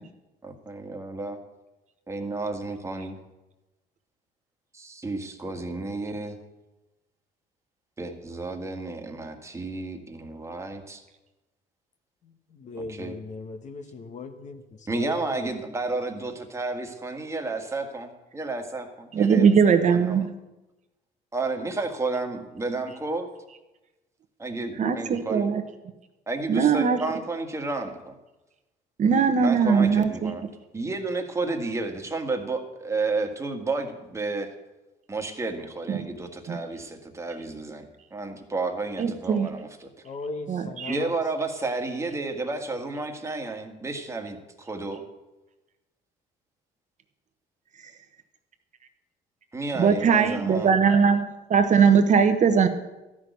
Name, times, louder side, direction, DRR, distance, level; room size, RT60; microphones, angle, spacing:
voice 1, 0.4-1.4 2.1-3.2 4.7-6.4 8.0-11.0 12.8-13.1 14.9-18.1 18.3-20.2 21.3-23.3 24.4-25.5 26.3-28.2 29.4-30.4 30.7-34.5 35.1-39.9 40.9-45.0 49.5-50.8, right 3 dB, 15° right, 4 dB, 1.7 m, -31 dB
voice 2, 12.2-15.5 40.0-41.1, left 3 dB, 45° left, 8 dB, 1.3 m, -38 dB
voice 3, 19.1-20.3 24.8-25.6 26.5-27.0 29.0-30.3 35.9-36.0 36.5-36.6 39.0-39.5 40.5-41.0 49.8-51.2 51.5-52.7, right 6 dB, 45° right, 7 dB, 1.1 m, -20 dB
13.0 x 6.2 x 9.3 m, 1.0 s
cardioid pair, 110°, 17 cm